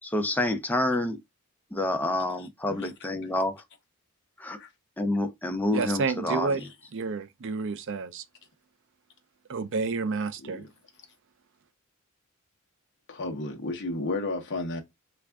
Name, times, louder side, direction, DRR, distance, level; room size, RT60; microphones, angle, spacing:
voice 1, 0.0-1.2 1.7-3.6 4.4-4.6 5.0-6.7, left 1 dB, 10° left, 0.5 m, -28 dB
voice 2, 5.7-6.6 6.9-8.2 9.5-10.6, right 4 dB, 60° right, 0.5 m, -30 dB
voice 3, 13.1-14.8, left 2 dB, 55° left, 0.9 m, -32 dB
3.4 x 2.5 x 3.4 m
head